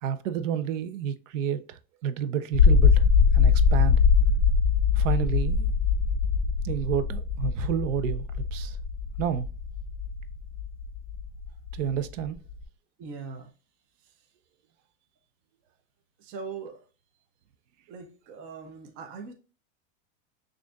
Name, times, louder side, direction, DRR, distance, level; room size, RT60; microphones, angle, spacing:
voice 1, 0.0-4.0 5.0-5.7 6.6-8.3 8.5-8.8 9.2-9.5 11.7-12.4, right 9 dB, 75° right, 0.6 m, -30 dB
sound 1, 2.5-12.6, left 6 dB, 40° left, 0.6 m, -22 dB
voice 2, 13.0-13.5 16.2-16.8 17.9-19.3, right 5 dB, 25° right, 0.4 m, -40 dB
6.1 x 2.5 x 2.2 m
supercardioid pair, 145°, 39 cm